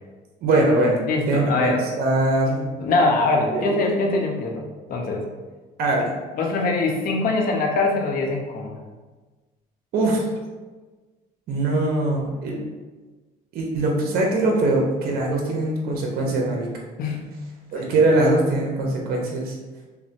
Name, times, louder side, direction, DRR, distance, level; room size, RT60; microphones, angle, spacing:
voice 1, 0.4-2.6 3.5-4.1 5.8-6.1 9.9-10.3 11.5-12.6 13.5-16.7 17.7-19.6, right 2 dB, 65° right, 0 dB, 0.6 m, -22 dB
voice 2, 1.1-1.8 2.8-4.6 4.9-5.3 6.3-8.8 17.0-17.3 17.9-18.0, left 3 dB, 60° left, 1 dB, 0.6 m, -23 dB
3.0 x 2.0 x 2.7 m, 1.3 s
cardioid pair, 110°, 17 cm